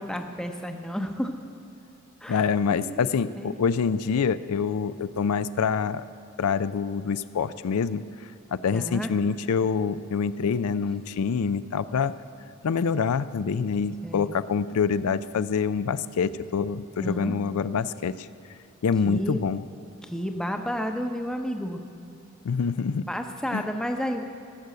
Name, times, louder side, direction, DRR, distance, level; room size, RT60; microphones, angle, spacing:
voice 1, 0.0-1.3 2.2-3.1 3.4-3.5 8.7-9.1 14.0-14.3 17.0-17.3 19.0-19.4 20.0-21.8 23.1-24.2, equal, 5° left, 5 dB, 0.7 m, -31 dB
voice 2, 2.3-6.0 6.4-8.0 8.5-12.1 12.6-18.3 18.8-19.6 22.4-23.1 23.5-23.6, left 6 dB, 85° left, 14 dB, 0.4 m, -26 dB
16.0 x 6.9 x 7.7 m, 2.7 s
head